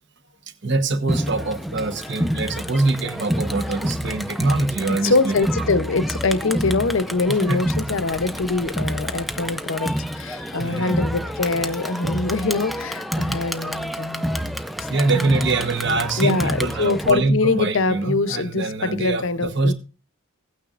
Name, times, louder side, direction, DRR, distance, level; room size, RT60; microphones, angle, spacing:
voice 1, 0.6-5.3 7.4-7.6 10.5-11.0 13.3-13.4 14.9-19.7, right 3 dB, 55° right, 1.2 m, -24 dB
Crowd, 1.1-17.1, equal, ahead, 0.5 m, -28 dB
voice 2, 5.0-14.4 14.8-15.4 16.2-19.7, left 3 dB, 65° left, 0.7 m, -23 dB
16.5 x 9.2 x 2.5 m
head